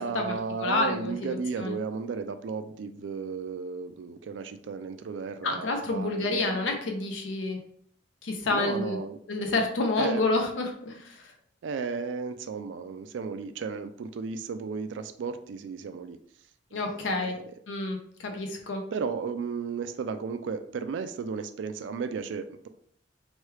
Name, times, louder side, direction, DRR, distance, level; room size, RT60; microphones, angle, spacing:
voice 1, 0.0-6.8 8.5-9.2 10.0-10.3 11.6-16.2 16.7-17.5 18.9-22.7, right 5 dB, 70° right, 9 dB, 0.3 m, -34 dB
voice 2, 0.6-1.7 5.4-7.6 8.2-9.0 9.3-11.1 16.7-17.4 17.7-18.8, left 2 dB, 90° left, 3 dB, 0.6 m, -29 dB
3.1 x 2.3 x 3.1 m, 0.63 s
head